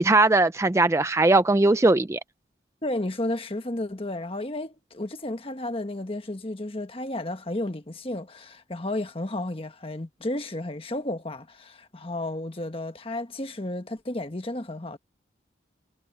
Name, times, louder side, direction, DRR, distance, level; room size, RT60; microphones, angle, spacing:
voice 1, 0.0-2.2, right 2 dB, 15° right, 0.4 m, -19 dB
voice 2, 2.8-15.0, left 1 dB, 30° left, 1.3 m, -32 dB
head